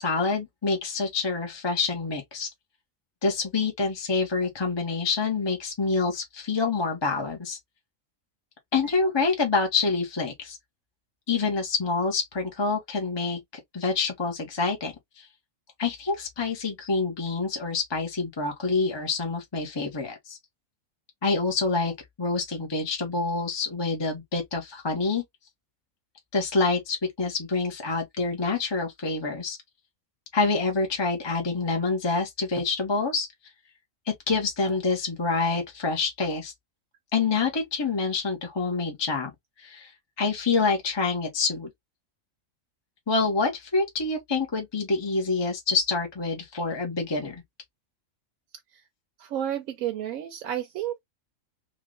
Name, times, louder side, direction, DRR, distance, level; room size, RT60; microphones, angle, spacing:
voice 1, 0.0-2.5 3.2-7.6 8.7-10.6 11.3-13.4 13.7-15.3 15.8-20.4 21.2-21.9 22.2-25.2 26.3-29.6 30.3-33.3 34.3-36.5 37.1-39.3 39.6-39.9 40.2-41.7 43.1-47.4, left 4 dB, 20° left, 0.9 m, -27 dB
voice 2, 49.2-51.0, right 11 dB, 80° right, 1.0 m, -31 dB
3.1 x 2.4 x 3.7 m
omnidirectional pair, 1.4 m